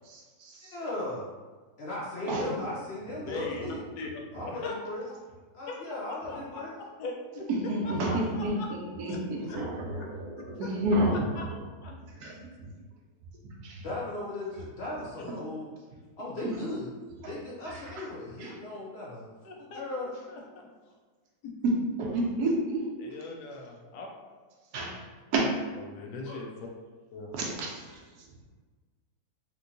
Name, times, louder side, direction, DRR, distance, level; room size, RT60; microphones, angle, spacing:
voice 1, 0.1-0.7 2.3-2.5 4.3-4.4 7.5-11.4 12.1-12.4 13.6-13.8 15.3-15.4 17.7-18.1 18.4-18.6 21.6-22.9 24.7-25.0 25.3-25.6 27.3-27.9, right 1 dB, 80° right, -1 dB, 1.2 m, -30 dB
voice 2, 0.6-1.3 1.8-3.8 4.3-5.0 5.5-6.7 13.8-15.7 16.2-16.9 17.3-19.3 19.6-20.1 26.2-26.4, left 2 dB, 65° left, -5 dB, 0.6 m, -37 dB
voice 3, 3.2-3.6 4.0-4.1 4.5-4.9 5.7-6.6 7.0-7.5 7.8-8.7 9.1-9.2 9.5-9.6 10.0-10.1 10.6-10.7 11.3-11.9 15.2-15.4 19.4-20.7 23.0-24.1 25.4-25.5 25.8-26.5 27.1-27.4, left 3 dB, 90° left, 0 dB, 1.2 m, -41 dB
3.4 x 2.9 x 2.6 m, 1.4 s
omnidirectional pair, 1.6 m